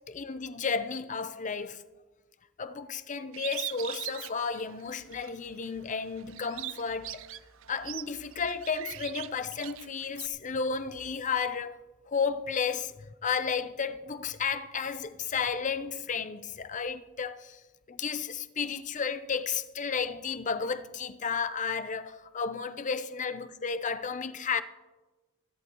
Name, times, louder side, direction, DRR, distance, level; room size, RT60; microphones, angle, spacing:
voice 1, 0.0-1.8 2.6-7.2 7.7-11.8 12.1-17.6 17.9-24.6, left 5 dB, 35° left, 0.6 m, -33 dB
Bird, 3.3-5.3 5.8-10.3, right 15 dB, 65° right, 0.4 m, -41 dB
25.0 x 11.0 x 3.0 m
head